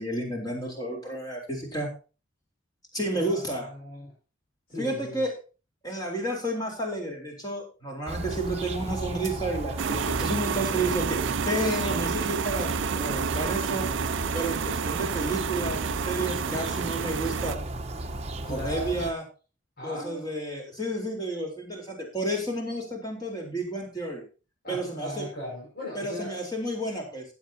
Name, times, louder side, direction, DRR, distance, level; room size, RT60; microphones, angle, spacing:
voice 1, 0.0-1.9 2.9-3.7 4.8-5.3 5.8-13.9 14.3-17.6 18.5-19.2 19.8-24.2 24.7-25.3 25.9-27.2, right 1 dB, 20° left, 0 dB, 4.2 m, -31 dB
voice 2, 3.1-4.1 4.7-5.2 16.3-16.7 18.5-19.1 19.8-20.3 24.6-26.4, left 1 dB, 45° left, -6 dB, 6.1 m, -38 dB
sound 1, 8.1-19.1, right 1 dB, 30° right, 1.1 m, -34 dB
sound 2, 9.8-17.6, right 7 dB, 65° right, 0.4 m, -30 dB
16.0 x 9.0 x 2.9 m, 0.33 s
head